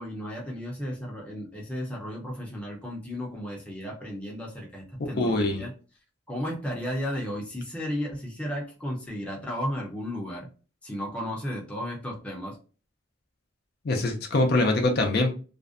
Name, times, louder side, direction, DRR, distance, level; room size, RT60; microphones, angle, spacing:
voice 1, 0.0-5.7 6.3-10.5 10.8-12.6, equal, 5° left, -2 dB, 0.6 m, -34 dB
voice 2, 5.2-5.6 13.8-15.3, left 2 dB, 55° left, 3 dB, 0.4 m, -23 dB
2.5 x 2.1 x 2.4 m, 0.36 s
head